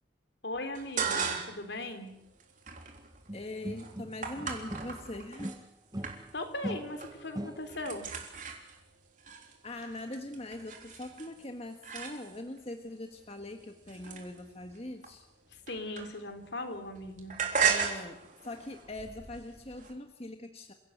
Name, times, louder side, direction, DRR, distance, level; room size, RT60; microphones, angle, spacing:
voice 1, 0.4-2.1 6.3-8.1 15.7-17.4, left 2 dB, 65° left, 7 dB, 3.5 m, -38 dB
sound 1, 0.7-1.7 2.1-5.6 6.0-6.5 6.8-7.3 7.5-12.6 13.2-16.5 16.7-19.9, right 6 dB, 45° right, 3.5 m, -36 dB
voice 2, 3.3-5.6 9.6-15.3 17.6-20.7, left 1 dB, 30° left, 5 dB, 1.5 m, -42 dB
sound 2, 3.3-5.1 5.4-8.0, right 1 dB, 20° right, 0.8 m, -41 dB
28.5 x 17.0 x 8.0 m, 0.82 s
head